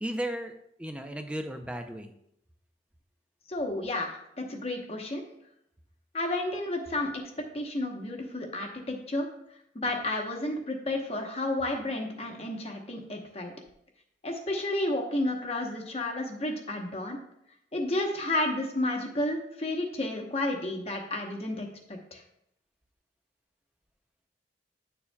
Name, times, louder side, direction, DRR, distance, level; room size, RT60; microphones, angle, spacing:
voice 1, 0.0-2.1, right 1 dB, 5° right, 6 dB, 0.5 m, -35 dB
voice 2, 3.5-5.2 6.1-9.3 9.7-13.5 14.2-17.2 17.7-22.2, left 1 dB, 35° left, 2 dB, 0.9 m, -31 dB
9.7 x 7.0 x 2.3 m, 0.76 s
head